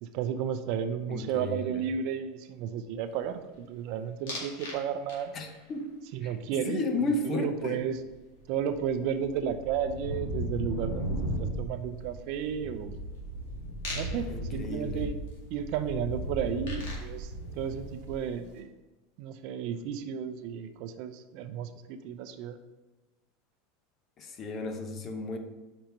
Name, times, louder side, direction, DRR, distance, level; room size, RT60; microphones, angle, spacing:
voice 1, 0.0-5.3 6.1-8.0 8.5-13.0 14.0-15.1 15.5-18.7 19.2-22.6, right 8 dB, 60° right, 9 dB, 0.5 m, -33 dB
voice 2, 1.1-1.7 5.3-6.3 6.7-7.8 14.3-15.0 24.2-25.4, left 2 dB, 35° left, 6 dB, 0.8 m, -33 dB
sound 1, 4.3-4.8 5.1-5.6 8.0-8.1 8.3-18.4, equal, 80° left, 2.1 m, -36 dB
5.3 x 4.4 x 5.2 m, 1.2 s
supercardioid pair, 130°, 0 cm